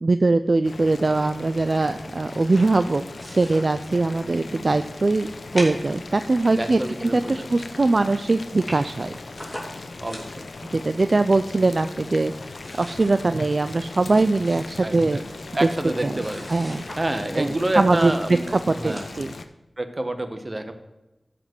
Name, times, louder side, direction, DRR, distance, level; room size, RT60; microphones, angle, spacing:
voice 1, 0.0-5.3 5.5-9.1 10.7-15.2 15.6-15.7 16.0-16.2 16.5-16.8 17.4-19.3, right 3 dB, 55° right, 10 dB, 0.4 m, -22 dB
Boiling, 0.6-19.4, left 3 dB, 90° left, 0.7 m, -39 dB
sound 1, 2.2-4.3 4.6-4.7 5.5-7.6 8.0-8.1 8.2-8.3 8.5-10.7 11.2-11.9 12.2-17.6 18.2-18.3 18.6-19.1, equal, 15° left, 3.1 m, -41 dB
voice 2, 4.3-4.7 6.6-7.5 10.0-10.4 14.8-15.2 15.5-16.4 17.0-18.4 18.8-19.0 19.8-20.7, right 1 dB, 35° right, 8 dB, 1.1 m, -28 dB
13.0 x 5.1 x 6.1 m, 0.97 s
wide cardioid pair, 75°, 0 cm